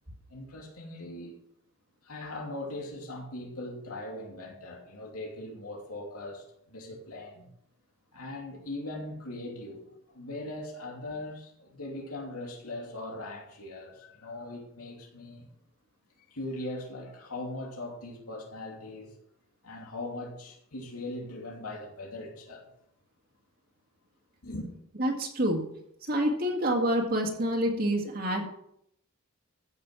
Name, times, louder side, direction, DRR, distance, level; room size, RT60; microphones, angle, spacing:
voice 1, 0.3-1.4 2.0-7.5 8.1-15.5 16.3-19.1 19.6-22.7 24.4-24.7, left 2 dB, 90° left, 2.8 m, -40 dB
voice 2, 25.0-25.6 26.1-28.4, equal, 45° right, 2.0 m, -27 dB
15.0 x 6.6 x 6.0 m
head